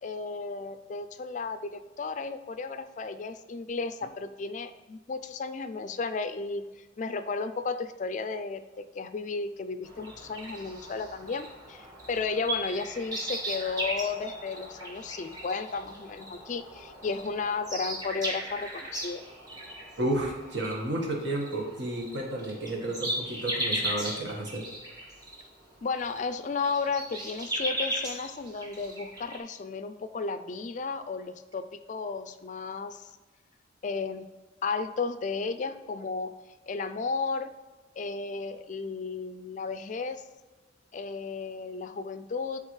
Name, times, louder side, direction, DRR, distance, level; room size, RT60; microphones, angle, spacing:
voice 1, 0.0-6.6 7.0-19.2 25.8-33.1 33.8-34.2 34.6-36.4 36.7-37.5 38.0-40.2 40.9-42.6, left 4 dB, 40° left, 11 dB, 0.3 m, -34 dB
sound 1, 9.8-29.4, right 1 dB, 20° right, 1.3 m, -37 dB
voice 2, 20.0-24.7, right 1 dB, 75° right, 0 dB, 1.5 m, -32 dB
11.5 x 3.9 x 3.2 m, 1.2 s
head